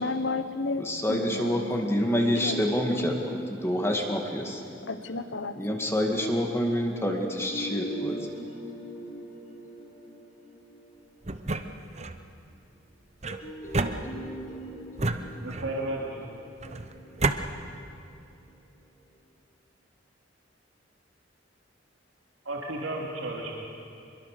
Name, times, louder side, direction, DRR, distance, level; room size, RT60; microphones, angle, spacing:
voice 1, 0.0-2.0 2.4-2.7 4.9-5.6, left 3 dB, 70° left, 10 dB, 1.2 m, -32 dB
voice 2, 0.8-3.1 3.6-4.6 5.6-8.2, equal, 15° left, 2 dB, 2.1 m, -27 dB
sound 1, 2.0-5.8 7.4-11.9 13.3-18.5, right 1 dB, 40° left, 6.1 m, -42 dB
sound 2, 11.2-12.2 13.2-14.5 15.0-15.9 16.6-17.4, right 2 dB, 35° right, 0.9 m, -30 dB
voice 3, 15.4-16.2 22.4-23.7, right 2 dB, 90° right, -2 dB, 2.8 m, -33 dB
25.0 x 22.5 x 6.8 m, 2.6 s
head